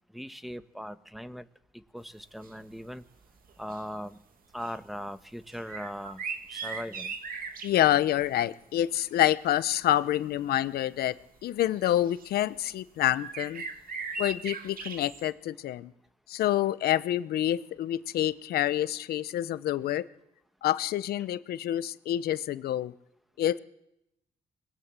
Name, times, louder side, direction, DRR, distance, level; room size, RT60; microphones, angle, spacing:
voice 1, 0.1-1.5 1.7-3.0 3.6-4.2 4.5-6.2 6.5-7.1, equal, ahead, 11 dB, 1.5 m, -39 dB
sound 1, 2.4-2.5 2.9-3.1 3.5-4.2 4.6-4.8 5.5-7.8 10.0-10.1 11.0-11.1 11.7-12.3 13.1-15.3, right 4 dB, 65° right, 2.5 m, -38 dB
voice 2, 7.6-11.1 11.4-13.6 14.2-15.9 16.3-20.1 20.6-22.9 23.4-23.6, left 12 dB, 85° left, 15 dB, 1.0 m, -27 dB
25.0 x 20.5 x 7.7 m, 0.83 s
supercardioid pair, 60°, 16 cm